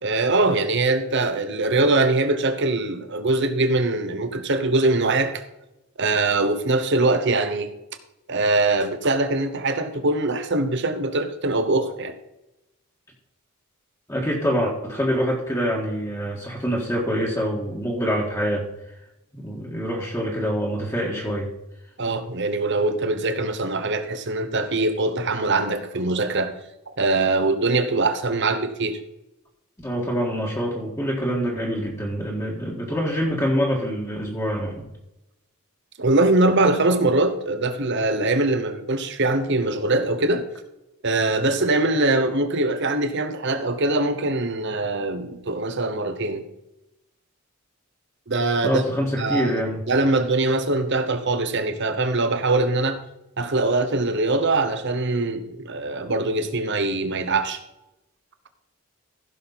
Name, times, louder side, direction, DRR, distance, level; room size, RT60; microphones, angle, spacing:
voice 1, 0.0-5.4 6.0-7.7 8.3-12.1 22.0-26.5 27.0-29.0 36.0-40.5 41.0-46.4 48.3-48.8 49.2-49.6 49.9-53.0 53.4-57.6, right 2 dB, 50° right, 9 dB, 1.1 m, -22 dB
voice 2, 14.1-18.7 19.3-21.5 29.8-34.9 48.6-49.8, equal, 15° left, -3 dB, 1.7 m, -25 dB
15.5 x 6.5 x 4.1 m, 0.91 s
head